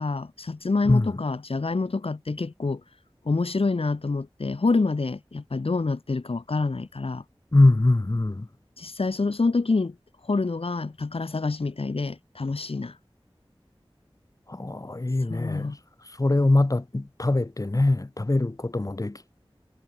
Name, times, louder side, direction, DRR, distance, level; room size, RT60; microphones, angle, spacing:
voice 1, 0.0-2.8 3.2-7.2 8.8-9.9 10.2-13.0 15.3-15.8, left 3 dB, 75° left, 0.8 m, -27 dB
voice 2, 7.5-8.5 14.5-15.7 16.2-19.4, left 2 dB, 35° left, 0.7 m, -22 dB
wide cardioid pair, 45°, 10 cm